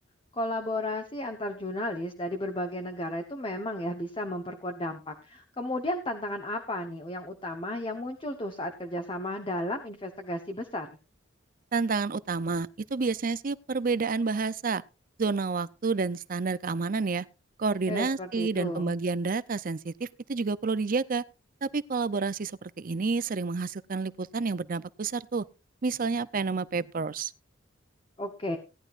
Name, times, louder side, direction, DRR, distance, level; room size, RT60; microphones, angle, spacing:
voice 1, 0.3-10.9 17.9-18.9 28.2-28.6, left 1 dB, 25° left, 1.0 m, -33 dB
voice 2, 11.7-14.8 15.2-17.3 17.6-21.2 21.6-25.4 25.8-27.3, right 4 dB, 45° right, 0.6 m, -29 dB
17.5 x 11.0 x 2.5 m
head